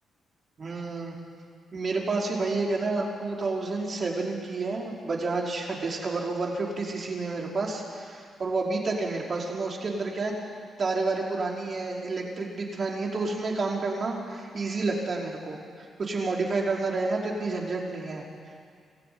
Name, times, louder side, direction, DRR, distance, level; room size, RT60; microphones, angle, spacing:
voice 1, 0.6-1.2 1.7-10.3 10.8-18.2, right 3 dB, 50° right, -1 dB, 5.1 m, -30 dB
26.5 x 15.0 x 9.6 m, 2.2 s
supercardioid pair, 55°, 0 cm